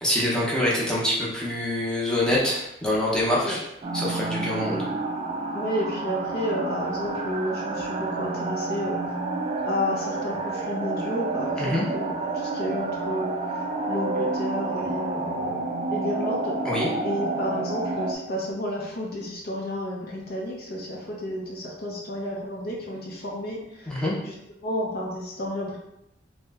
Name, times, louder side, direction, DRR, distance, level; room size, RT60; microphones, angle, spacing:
voice 1, 0.0-3.6 3.9-4.8 11.6-11.8 16.6-16.9 23.9-24.1, left 1 dB, 5° left, -6 dB, 0.7 m, -25 dB
sound 1, 3.8-18.1, right 3 dB, 30° right, 0.3 m, -29 dB
voice 2, 5.5-9.2 9.6-15.7 15.9-16.6 17.0-23.9 24.2-24.3 24.6-25.8, left 1 dB, 55° left, -2 dB, 0.6 m, -31 dB
2.9 x 2.1 x 3.4 m, 0.83 s
head